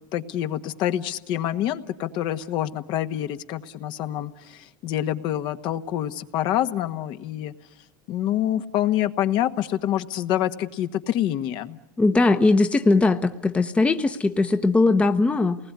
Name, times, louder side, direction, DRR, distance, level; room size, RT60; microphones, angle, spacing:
voice 1, 0.1-7.5 8.1-11.8, left 12 dB, 50° left, 9 dB, 1.4 m, -26 dB
voice 2, 12.0-15.6, left 3 dB, 10° left, 8 dB, 1.0 m, -20 dB
28.5 x 20.0 x 9.6 m, 0.99 s
supercardioid pair, 135°, 10 cm